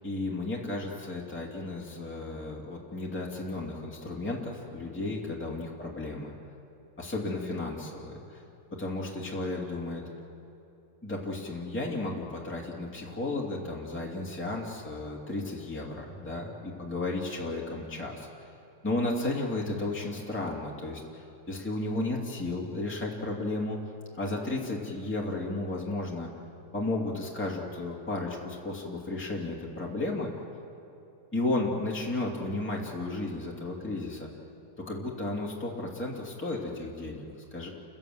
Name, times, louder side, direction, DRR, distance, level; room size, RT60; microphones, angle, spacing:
voice 1, 0.0-6.3 7.0-8.4 8.7-10.1 11.0-18.4 18.8-23.8 24.2-26.3 26.7-30.3 31.3-34.3 34.8-37.7, left 2 dB, 5° left, -3 dB, 2.5 m, -33 dB
29.5 x 16.5 x 7.8 m, 2.8 s
omnidirectional pair, 2.0 m